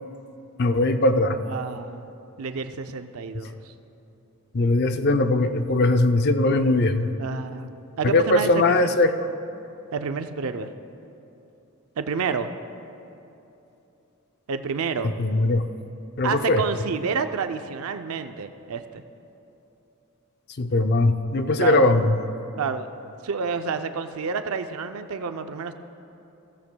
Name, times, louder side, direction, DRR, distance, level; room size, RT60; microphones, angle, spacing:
voice 1, 0.6-1.4 4.5-7.1 8.0-9.3 15.2-15.6 16.2-16.6 20.6-22.2, left 2 dB, 50° left, 8 dB, 0.5 m, -20 dB
voice 2, 1.5-2.1 2.4-3.7 7.2-7.7 8.0-9.0 9.9-10.7 12.0-12.5 14.5-15.2 16.2-19.0 21.6-21.8 22.6-22.9 23.2-25.7, right 5 dB, 90° right, 8 dB, 0.5 m, -29 dB
16.5 x 14.5 x 2.2 m, 2.9 s
head